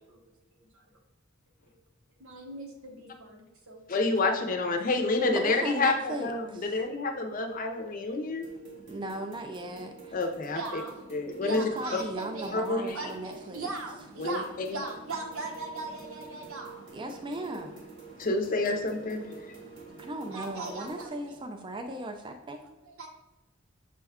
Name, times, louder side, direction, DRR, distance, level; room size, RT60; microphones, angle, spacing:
voice 1, 2.2-4.1 4.6-4.8 10.5-11.0 11.4-12.6 12.9-17.0 18.6-18.7 20.3-21.5 22.6-23.1, right 3 dB, 90° right, 1 dB, 0.9 m, -39 dB
voice 2, 3.9-8.5 10.1-10.6 11.1-11.6 12.5-13.0 14.2-14.4 14.7-14.8 18.2-19.6, left 3 dB, 40° left, 4 dB, 0.5 m, -28 dB
voice 3, 5.3-6.8 8.9-10.2 11.5-13.7 16.9-17.7 20.0-22.6, right 1 dB, 25° right, 5 dB, 0.3 m, -37 dB
sound 1, 8.3-21.1, right 3 dB, 60° right, 0.8 m, -48 dB
6.1 x 2.2 x 3.5 m, 1.0 s
head